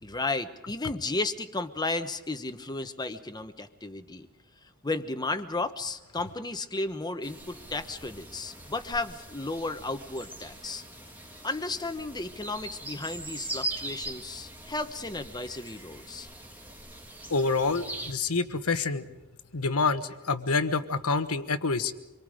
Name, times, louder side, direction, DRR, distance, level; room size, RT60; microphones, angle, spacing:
voice 1, 0.0-4.3 4.8-10.8 11.4-16.3, left 2 dB, 20° left, 9 dB, 1.0 m, -33 dB
sound 1, 7.2-18.1, right 1 dB, 10° right, 2.1 m, -41 dB
voice 2, 17.3-19.1 19.5-21.9, left 4 dB, 80° left, 10 dB, 1.3 m, -27 dB
26.5 x 23.0 x 5.0 m, 0.98 s
head